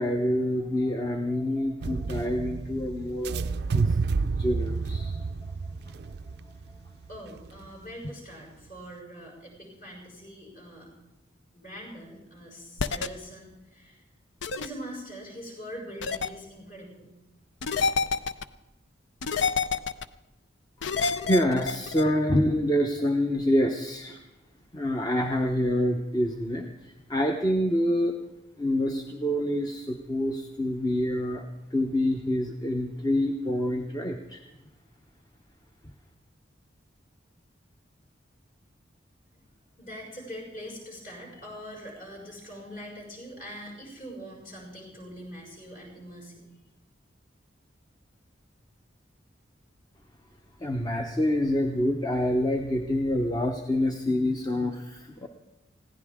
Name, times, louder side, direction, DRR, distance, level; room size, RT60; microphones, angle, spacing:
voice 1, 0.0-4.0 4.2-5.3 21.2-24.2 24.7-28.2 28.6-34.4 50.6-55.3, left 1 dB, 20° left, 4 dB, 0.8 m, -27 dB
sound 1, 1.8-7.9, right 4 dB, 55° right, 0.4 m, -30 dB
voice 2, 7.1-10.9 11.5-14.0 14.6-17.1 39.3-39.4 39.8-46.5, equal, 45° left, -2 dB, 6.0 m, -43 dB
sound 2, 12.8-13.1 14.4-14.7 16.0-16.3 17.6-18.4 19.2-20.1 20.8-22.0, left 5 dB, 70° left, 0.6 m, -27 dB
21.0 x 16.0 x 3.6 m, 1.0 s
head